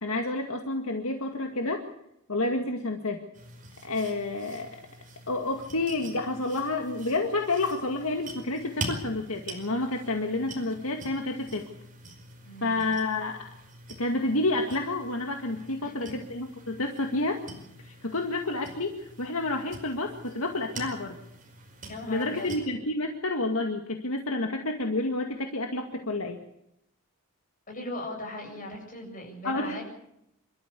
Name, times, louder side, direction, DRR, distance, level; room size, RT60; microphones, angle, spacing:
voice 1, 0.0-1.8 2.3-3.3 3.8-4.8 5.3-11.6 12.6-13.4 14.0-17.4 17.8-21.2 22.1-26.4 29.4-29.8, left 2 dB, 65° left, 3 dB, 2.1 m, -29 dB
sound 1, 3.3-22.6, right 2 dB, 35° right, 5.2 m, -44 dB
voice 2, 12.4-12.9 15.8-15.9 21.9-22.5 27.7-29.8, left 1 dB, 40° left, 1 dB, 7.8 m, -38 dB
27.0 x 13.5 x 8.4 m, 0.80 s
head